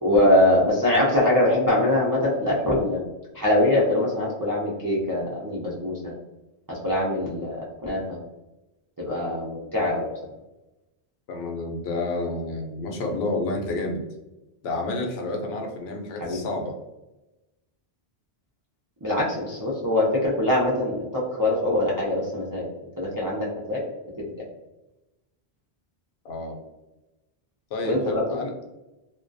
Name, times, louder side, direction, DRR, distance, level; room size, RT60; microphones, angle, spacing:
voice 1, 0.0-3.0 3.3-6.1 6.7-7.5 7.8-8.2 9.0-10.1 16.2-16.4 19.0-22.7 23.0-23.8 24.2-24.3 27.8-28.2, left 1 dB, 35° right, -6 dB, 0.3 m, -23 dB
voice 2, 11.3-14.0 14.6-16.8 26.2-26.6 27.7-28.5, left 2 dB, 75° left, 1 dB, 0.8 m, -30 dB
2.3 x 2.2 x 2.5 m, 1.0 s
omnidirectional pair, 1.1 m